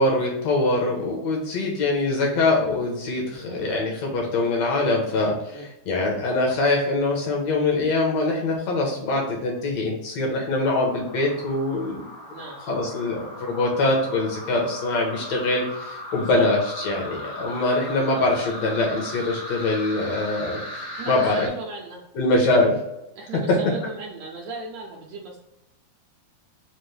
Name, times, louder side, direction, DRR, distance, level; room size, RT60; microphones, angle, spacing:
voice 1, 0.0-12.0 12.7-21.5 22.2-22.8 23.5-23.6, left 2 dB, 70° left, -1 dB, 1.8 m, -23 dB
sound 1, 10.6-21.5, left 1 dB, 85° left, 2.4 m, -37 dB
voice 2, 12.3-12.6 16.3-16.5 20.9-22.0 23.1-25.4, right 3 dB, 80° right, -2 dB, 1.6 m, -36 dB
5.3 x 2.1 x 3.1 m, 0.90 s
omnidirectional pair, 3.6 m